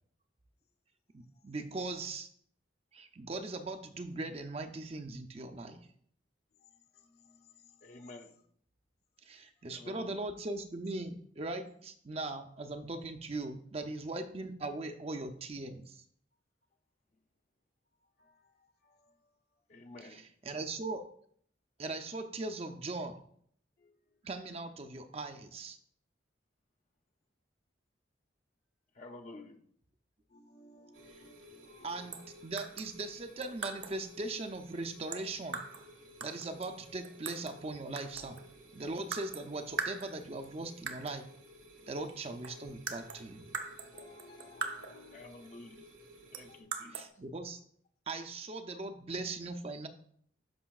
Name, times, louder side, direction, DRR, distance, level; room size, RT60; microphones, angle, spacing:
voice 1, 1.1-2.3 2.9-5.8 9.2-16.0 20.1-21.1 21.8-23.2 24.2-25.8 31.8-35.6 36.2-38.4 38.7-41.3 41.8-43.5 46.9-47.6 48.1-49.9, right 2 dB, 30° right, 6 dB, 0.5 m, -40 dB
voice 2, 7.1-7.5 18.2-18.3 30.3-31.9 43.9-45.2 46.5-46.6, left 3 dB, 55° left, 5 dB, 1.0 m, -58 dB
voice 3, 7.8-8.3 9.7-10.1 19.7-20.2 28.9-29.6 45.1-45.9 46.3-47.0, left 2 dB, 40° left, 4 dB, 0.6 m, -50 dB
sound 1, 30.9-46.6, equal, 80° right, 1.5 m, -56 dB
sound 2, 32.1-32.3 32.6-34.0 35.1-35.9 36.2-37.6 38.0-38.5 39.1-39.5 39.8-40.5 40.9-41.2 42.1-42.2 42.4-45.1 46.3-47.1, right 4 dB, 65° right, 0.8 m, -41 dB
11.5 x 5.5 x 2.4 m, 0.62 s
head